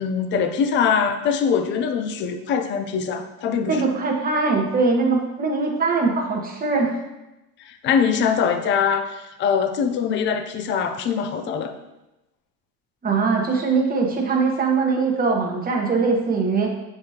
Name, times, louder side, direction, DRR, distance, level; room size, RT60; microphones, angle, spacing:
voice 1, 0.0-3.9 7.6-11.8, left 6 dB, 30° left, 8 dB, 0.4 m, -23 dB
voice 2, 3.7-6.9 13.0-16.7, right 4 dB, 20° right, 0 dB, 1.1 m, -21 dB
7.6 x 4.8 x 2.8 m, 0.97 s
cardioid pair, 135°, 42 cm